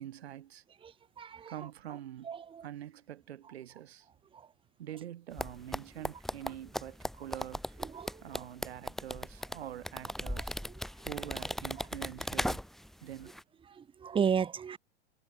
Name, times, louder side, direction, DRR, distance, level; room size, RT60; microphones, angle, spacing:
voice 1, 0.0-0.6 1.3-4.1 4.8-7.9 8.2-10.6 11.0-12.6 13.0-13.4, right 11 dB, 80° right, 4.7 m, -45 dB
voice 2, 0.8-1.7 2.2-2.7 4.3-4.5 7.8-8.4 10.4-10.7 13.7-14.8, right 7 dB, 15° right, 2.6 m, -35 dB
sound 1, 5.4-12.9 13.2-13.4, equal, ahead, 3.6 m, -37 dB
hypercardioid pair, 135°, 31 cm